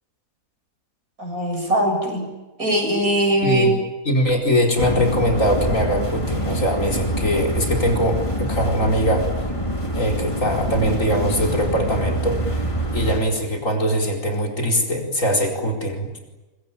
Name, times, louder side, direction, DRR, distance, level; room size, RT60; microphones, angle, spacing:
voice 1, 1.2-2.3 2.6-3.7, right 1 dB, 70° right, 3 dB, 8.0 m, -20 dB
voice 2, 3.4-3.7 4.0-9.3 9.9-12.6 12.9-16.2, equal, 55° left, 1 dB, 5.1 m, -22 dB
sound 1, 4.8-13.2, equal, 20° left, 3.9 m, -25 dB
24.5 x 23.5 x 9.0 m, 1.1 s
omnidirectional pair, 1.6 m